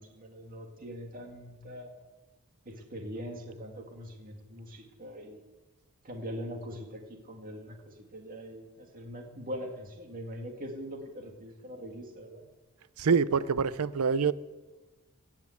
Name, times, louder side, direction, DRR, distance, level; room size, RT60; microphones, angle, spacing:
voice 1, 0.0-1.9 2.7-5.4 6.0-12.4, equal, 40° right, 2.2 m, -42 dB
voice 2, 13.0-14.3, right 5 dB, 85° right, 0.6 m, -25 dB
16.5 x 7.3 x 8.2 m
head